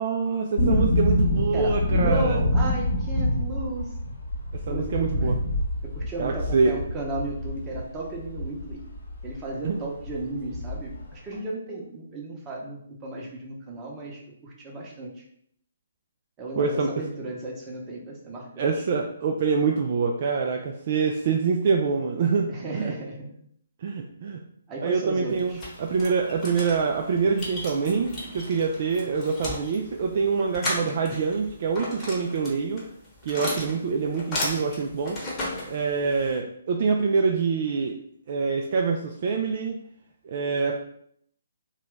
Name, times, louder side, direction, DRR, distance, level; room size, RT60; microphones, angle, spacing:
voice 1, 0.0-2.4 4.7-5.4 6.2-6.7 9.6-9.8 16.6-16.9 18.6-22.9 23.8-24.4 24.8-25.5 25.8-32.8 33.2-35.2 35.7-38.0 38.3-39.8 40.2-40.8, right 5 dB, 45° right, 1 dB, 0.3 m, -25 dB
sound 1, 0.6-9.4 9.7-9.8 10.0-11.1 11.3-11.4, left 1 dB, 60° left, 0.9 m, -26 dB
voice 2, 1.5-3.9 4.6-5.3 5.8-8.8 9.2-15.2 16.4-18.7 22.5-23.4 24.7-25.6, right 2 dB, 20° right, -2 dB, 0.8 m, -34 dB
sound 2, 25.3-36.4, left 1 dB, 20° left, 0.9 m, -35 dB
2.8 x 2.3 x 3.2 m, 0.67 s
figure-of-eight pair, 135°, 0 cm